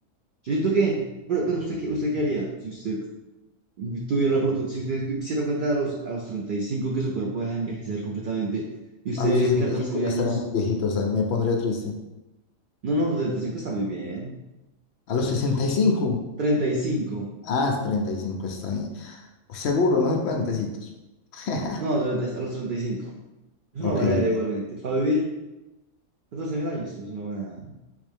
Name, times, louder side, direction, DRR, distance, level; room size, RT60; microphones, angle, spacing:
voice 1, 0.4-3.0 3.8-8.6 9.0-10.4 12.8-14.3 16.4-17.3 21.8-23.1 23.7-25.3 26.3-27.7, right 2 dB, 80° right, -1 dB, 0.4 m, -27 dB
voice 2, 9.2-12.0 15.1-16.2 17.4-20.9 21.3-21.8 23.8-24.2, left 4 dB, 65° left, 2 dB, 0.7 m, -25 dB
3.3 x 3.1 x 3.4 m, 1.0 s
omnidirectional pair, 1.4 m